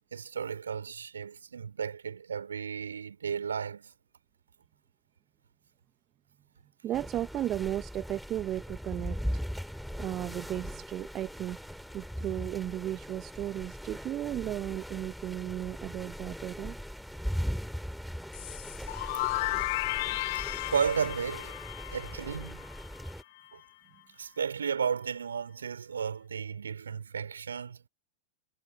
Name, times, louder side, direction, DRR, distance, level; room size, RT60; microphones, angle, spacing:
voice 1, 0.1-3.9 20.7-21.6 21.9-22.7 23.5-23.6 24.2-27.8, right 7 dB, 70° right, 4.2 m, -33 dB
voice 2, 6.8-9.4 10.0-11.6 11.9-16.8 20.1-20.2, right 12 dB, 30° right, 1.8 m, -35 dB
sound 1, 6.9-23.2, equal, ahead, 3.2 m, -39 dB
sound 2, 18.3-23.1, left 20 dB, 50° left, 1.1 m, -34 dB
figure-of-eight pair, 90°, 0 cm